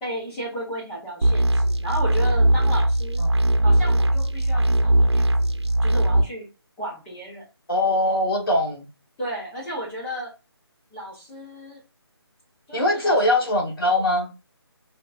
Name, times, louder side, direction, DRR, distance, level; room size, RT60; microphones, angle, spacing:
voice 1, 0.0-3.2 3.6-6.5 6.8-7.4 9.2-10.3 10.9-11.8 12.7-13.2, equal, 5° left, 1.0 m, -33 dB
sound 1, 1.2-6.2, right 1 dB, 80° right, 0.8 m, -20 dB
voice 2, 7.7-8.9 12.7-14.3, left 1 dB, 60° left, 2.0 m, -22 dB
4.9 x 3.0 x 2.4 m
figure-of-eight pair, 175°, 14 cm